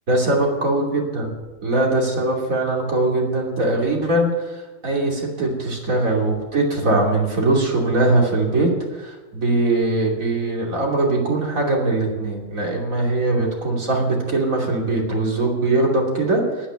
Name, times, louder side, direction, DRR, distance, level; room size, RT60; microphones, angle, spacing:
voice 1, 0.1-1.3 1.6-16.7, right 2 dB, 40° right, -1 dB, 3.2 m, -21 dB
9.9 x 9.9 x 9.2 m, 1.2 s
omnidirectional pair, 2.2 m